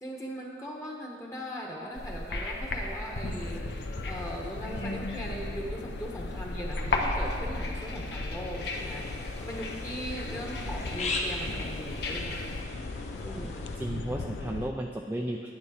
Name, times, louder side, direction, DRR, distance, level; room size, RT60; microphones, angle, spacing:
voice 1, 0.0-12.5 13.2-13.7, equal, 20° left, -1 dB, 1.1 m, -39 dB
sound 1, 1.9-12.6, left 2 dB, 70° left, 1.1 m, -36 dB
sound 2, 3.2-14.7, left 3 dB, 90° left, 0.6 m, -39 dB
sound 3, 8.7-13.8, left 2 dB, 40° left, 1.0 m, -39 dB
voice 2, 13.2-13.5 13.8-15.5, right 1 dB, 10° right, 1 dB, 0.4 m, -34 dB
9.5 x 9.4 x 4.9 m, 2.1 s
head